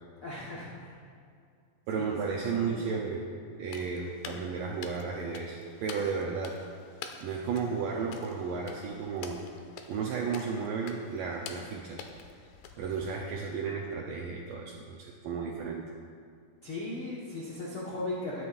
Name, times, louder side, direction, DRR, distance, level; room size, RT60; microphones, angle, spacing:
voice 1, 0.2-1.0 1.9-3.0 16.6-18.5, left 2 dB, 65° left, -6 dB, 1.3 m, -38 dB
voice 2, 1.9-6.6 7.2-9.4 9.9-12.1 12.8-15.8, right 5 dB, 75° right, -1 dB, 2.0 m, -33 dB
sound 1, 3.6-13.4, left 6 dB, 85° left, 2.8 m, -48 dB
20.0 x 9.6 x 2.6 m, 2.4 s
omnidirectional pair, 4.9 m